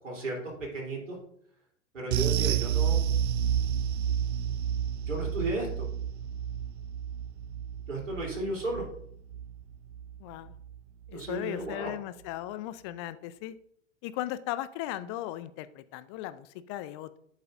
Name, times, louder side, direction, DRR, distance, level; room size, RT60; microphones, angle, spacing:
voice 1, 0.0-1.2 1.9-3.0 5.1-5.9 7.9-8.8 11.1-11.9, right 2 dB, 75° right, -2 dB, 3.3 m, -34 dB
sound 1, 2.1-10.8 11.1-11.3 11.7-11.8, right 9 dB, 60° right, 0.4 m, -30 dB
voice 2, 10.2-10.5 11.1-13.6 14.0-17.2, left 14 dB, 25° left, 15 dB, 0.3 m, -37 dB
10.5 x 8.1 x 2.5 m, 0.69 s
figure-of-eight pair, 90°, 37 cm